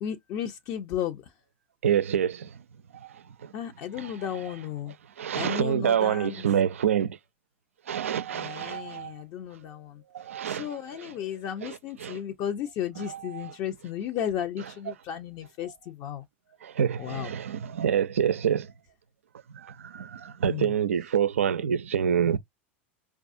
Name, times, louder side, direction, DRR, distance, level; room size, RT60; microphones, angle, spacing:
voice 1, 0.0-1.2 3.5-4.9 5.3-6.5 8.3-10.0 10.5-16.2 17.0-17.3 20.5-20.7, left 9 dB, 50° left, 0.7 m, -34 dB
voice 2, 1.8-2.6 2.9-3.5 3.9-4.4 5.2-7.2 7.9-9.2 10.1-11.1 11.6-12.2 13.0-13.5 16.6-18.7 19.5-22.4, right 8 dB, 85° right, 0.4 m, -27 dB
4.6 x 2.4 x 2.5 m
hypercardioid pair, 100°, 7 cm